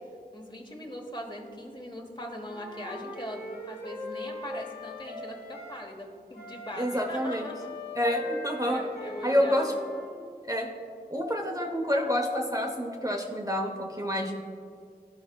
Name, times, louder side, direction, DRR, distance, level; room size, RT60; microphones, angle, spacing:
voice 1, 0.3-7.7 8.6-9.8, equal, 30° left, 1 dB, 1.2 m, -41 dB
Wind instrument woodwind instrument, 2.5-5.8 6.3-10.1, left 2 dB, 90° left, 1.4 m, -40 dB
voice 2, 6.8-7.5 8.0-8.8 9.2-9.7 10.5-10.7 11.1-14.3, equal, 20° right, 0 dB, 0.7 m, -28 dB
13.0 x 4.8 x 2.2 m, 2.3 s
wide cardioid pair, 50°, 17 cm